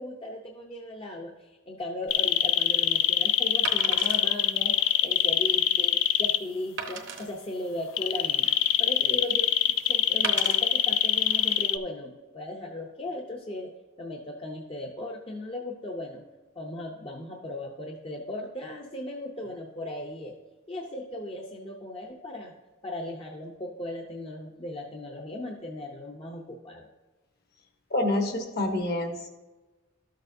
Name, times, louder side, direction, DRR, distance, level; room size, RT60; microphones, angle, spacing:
voice 1, 0.0-8.5 8.8-9.5 9.8-13.7 14.0-16.2 16.6-20.3 20.7-22.5 22.8-26.9, left 1 dB, 30° left, 0 dB, 0.6 m, -37 dB
Wood, 2.0-2.2 3.6-4.2 4.9-5.0 5.5-5.6 6.8-7.3 8.0-8.8 10.2-10.6 11.3-11.5, right 5 dB, 65° right, 0.9 m, -36 dB
sound 1, 2.1-6.4 8.0-11.8, left 12 dB, 90° left, 0.4 m, -23 dB
voice 2, 27.9-29.3, left 1 dB, 55° left, 4 dB, 1.2 m, -27 dB
12.5 x 6.6 x 2.6 m, 1.2 s
head